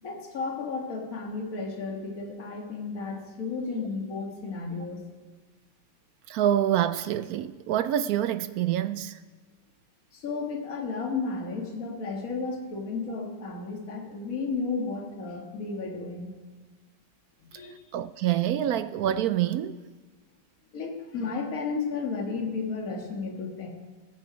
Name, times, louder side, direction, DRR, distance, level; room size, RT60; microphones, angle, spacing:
voice 1, 0.0-5.0 10.1-16.3 17.5-17.8 20.7-23.7, left 4 dB, 50° left, 2.1 m, -33 dB
voice 2, 6.3-9.2 17.9-19.8, right 11 dB, 75° right, 0.9 m, -26 dB
17.0 x 10.5 x 5.1 m
omnidirectional pair, 2.0 m